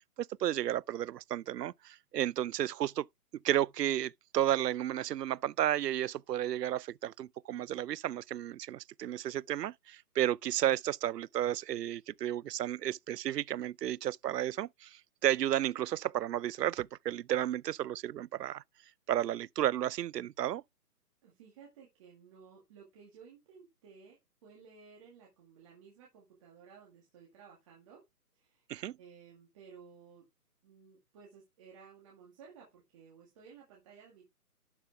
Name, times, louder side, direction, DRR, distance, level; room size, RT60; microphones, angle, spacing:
voice 1, 0.2-3.1 3.4-18.6 19.1-20.6 28.7-29.0, right 12 dB, 90° right, 0.5 m, -32 dB
voice 2, 21.2-28.0 28.3-28.6 29.0-30.3 30.6-34.3, right 6 dB, 20° right, 1.9 m, -56 dB
12.0 x 5.3 x 3.4 m
hypercardioid pair, 165°, 47 cm